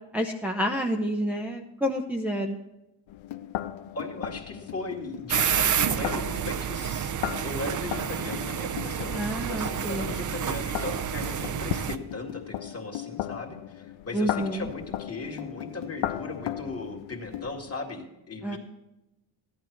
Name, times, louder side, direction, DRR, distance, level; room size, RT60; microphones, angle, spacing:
voice 1, 0.1-2.6 9.1-10.1 14.1-14.7 18.4-18.6, equal, 5° right, 1 dB, 0.7 m, -29 dB
sound 1, 3.1-17.7, left 13 dB, 85° left, 0.6 m, -37 dB
voice 2, 3.9-7.1 7.4-18.6, left 2 dB, 30° left, 1 dB, 2.0 m, -38 dB
sound 2, 5.3-12.0, right 8 dB, 45° right, 0.6 m, -29 dB
14.5 x 11.0 x 4.6 m, 0.94 s
cardioid pair, 110°, 45 cm